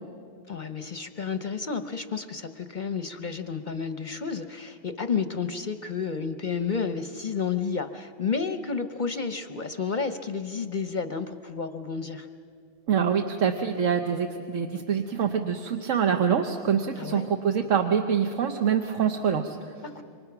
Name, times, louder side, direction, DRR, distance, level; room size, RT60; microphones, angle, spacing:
voice 1, 0.5-12.3 17.0-17.3 19.8-20.0, left 5 dB, 45° left, 9 dB, 0.8 m, -31 dB
voice 2, 12.9-19.7, right 7 dB, 75° right, 5 dB, 1.3 m, -25 dB
27.5 x 24.5 x 5.9 m, 2.4 s
omnidirectional pair, 1.4 m